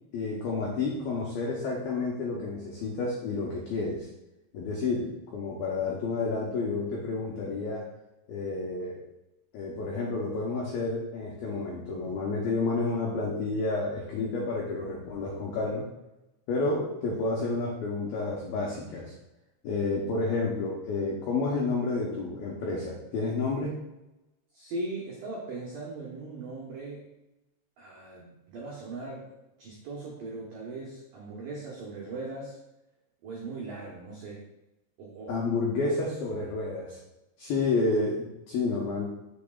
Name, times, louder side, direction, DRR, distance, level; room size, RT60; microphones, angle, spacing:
voice 1, 0.1-4.1 4.5-7.9 8.3-9.0 9.5-15.9 16.5-19.1 19.6-23.8 35.3-37.0 37.4-39.1, left 3 dB, 90° left, -3 dB, 2.1 m, -30 dB
voice 2, 24.5-27.1 27.8-29.3 29.6-32.6 33.2-34.4 35.0-35.4, right 2 dB, 90° right, -4 dB, 1.9 m, -39 dB
8.6 x 6.6 x 2.3 m, 0.98 s
omnidirectional pair, 5.6 m